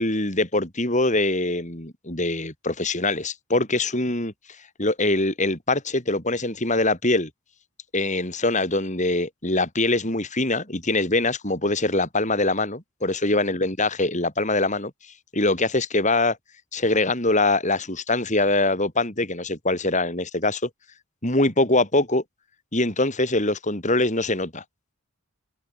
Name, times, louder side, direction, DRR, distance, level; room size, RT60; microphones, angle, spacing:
voice 1, 0.0-4.3 4.8-7.3 7.9-14.9 15.3-16.4 16.7-20.7 21.2-22.2 22.7-24.6, left 2 dB, 35° left, 6.0 m, -23 dB
head